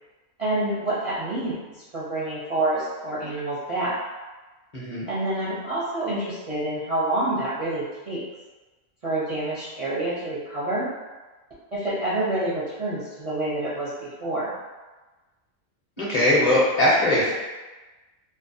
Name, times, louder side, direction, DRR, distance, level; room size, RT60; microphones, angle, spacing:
voice 1, 0.4-1.6 1.9-3.9 5.1-8.2 9.0-10.9 11.7-14.5, right 2 dB, 50° right, -10 dB, 0.4 m, -27 dB
voice 2, 4.7-5.1 16.0-17.3, left 1 dB, 40° left, -8 dB, 0.7 m, -20 dB
2.5 x 2.2 x 2.6 m, 1.2 s
omnidirectional pair, 1.2 m